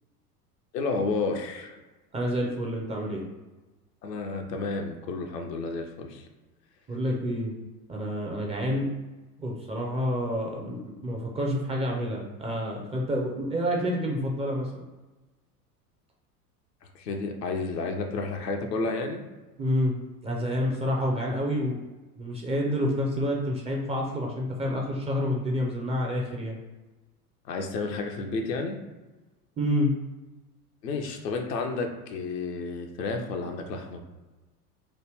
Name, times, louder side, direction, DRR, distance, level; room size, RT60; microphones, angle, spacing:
voice 1, 0.7-1.8 4.0-6.3 16.9-19.2 27.4-28.8 30.8-34.0, left 3 dB, 85° left, 3 dB, 0.6 m, -31 dB
voice 2, 2.1-3.2 6.9-7.5 7.9-8.9 9.4-14.8 19.6-19.9 20.2-21.8 22.2-26.6 29.6-29.9, equal, 15° right, -1 dB, 0.4 m, -28 dB
3.0 x 2.1 x 3.4 m, 1.2 s
hypercardioid pair, 85°, 47 cm